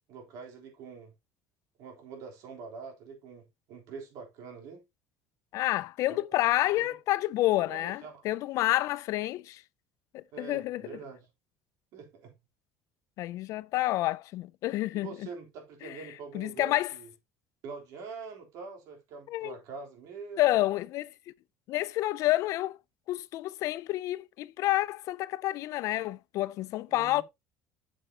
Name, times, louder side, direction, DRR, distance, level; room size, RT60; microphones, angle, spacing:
voice 1, 0.1-1.1 1.8-4.8 6.1-6.2 6.7-7.0 7.6-8.2 10.3-11.3 11.9-12.3 14.9-17.1 17.6-20.4 26.9-27.2, right 5 dB, 60° right, 3.5 m, -44 dB
voice 2, 5.5-9.6 10.1-11.0 13.2-15.3 15.8-15.9 16.3-16.9 19.3-19.6 20.4-21.1 21.7-22.8 23.1-27.2, left 16 dB, 55° left, 0.4 m, -29 dB
8.0 x 6.7 x 2.8 m
cardioid pair, 155°, 7 cm